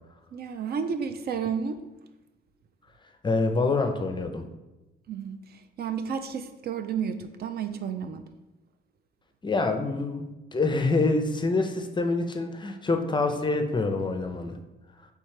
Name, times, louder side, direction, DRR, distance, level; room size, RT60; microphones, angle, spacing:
voice 1, 0.3-1.8 5.1-8.2, right 6 dB, 50° right, 9 dB, 0.4 m, -32 dB
voice 2, 3.2-4.4 9.4-14.6, left 3 dB, 25° left, 5 dB, 0.5 m, -26 dB
3.3 x 3.1 x 4.8 m, 1.0 s
cardioid pair, 90°, 20 cm